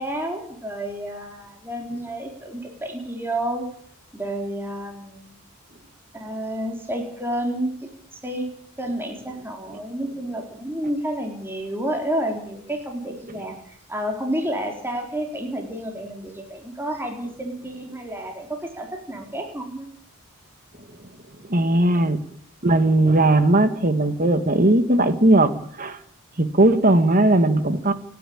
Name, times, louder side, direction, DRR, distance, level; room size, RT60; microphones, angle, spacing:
voice 1, 0.0-3.6 4.1-5.4 6.1-8.5 8.8-19.9 21.9-22.0, right 1 dB, 10° right, 2 dB, 3.8 m, -30 dB
voice 2, 21.5-22.2 22.6-26.0 26.4-27.9, right 1 dB, 40° right, 10 dB, 1.9 m, -18 dB
28.5 x 10.5 x 8.7 m, 0.63 s
head